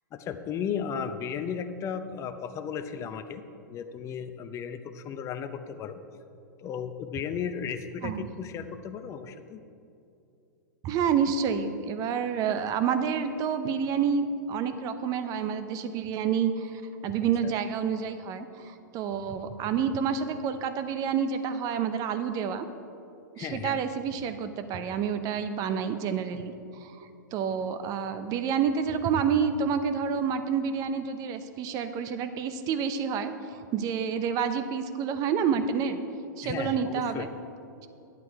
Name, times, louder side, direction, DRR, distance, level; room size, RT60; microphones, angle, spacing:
voice 1, 0.1-3.4 3.7-6.0 6.6-9.6 17.4-17.5 23.4-23.8 36.4-37.3, left 7 dB, 30° left, 9 dB, 0.7 m, -35 dB
voice 2, 10.8-22.7 23.4-26.5 26.8-36.0 36.4-37.3, right 7 dB, 35° right, 9 dB, 0.8 m, -29 dB
11.0 x 8.5 x 4.8 m, 2.6 s
hypercardioid pair, 110°, 10 cm